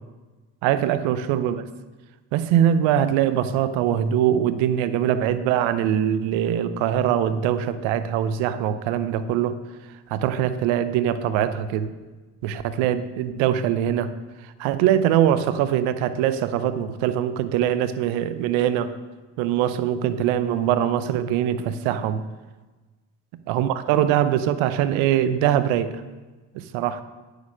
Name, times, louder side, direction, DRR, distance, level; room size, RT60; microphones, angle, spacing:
voice 1, 0.6-1.6 2.3-9.6 10.1-11.9 12.4-14.1 14.6-18.9 19.4-22.3 23.5-25.9 26.5-27.0, right 10 dB, 80° right, 13 dB, 0.8 m, -22 dB
9.4 x 6.5 x 6.4 m, 1.2 s
hypercardioid pair, 55°, 46 cm